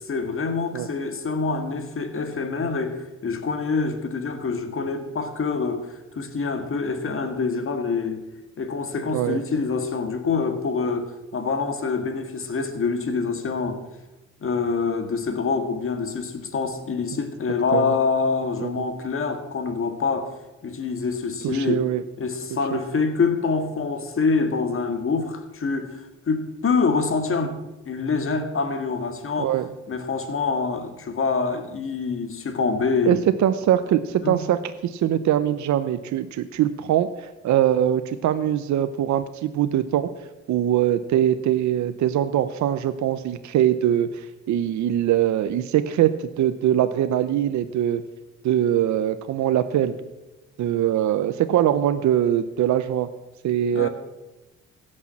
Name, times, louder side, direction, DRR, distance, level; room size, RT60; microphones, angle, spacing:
voice 1, 0.1-8.2 8.6-13.8 14.4-20.3 20.6-21.8 22.2-27.6 27.9-29.5 29.9-33.2 34.2-34.4 53.7-53.9, left 4 dB, 45° left, 7 dB, 1.9 m, -26 dB
voice 2, 9.1-9.4 17.7-18.0 18.6-18.9 21.4-22.0 22.7-22.8 29.4-29.7 33.1-40.1 40.5-48.0 48.4-49.9 50.6-53.1 53.4-53.9, right 11 dB, 70° right, 11 dB, 0.7 m, -22 dB
16.0 x 6.4 x 7.4 m, 1.1 s
cardioid pair, 90°, 30 cm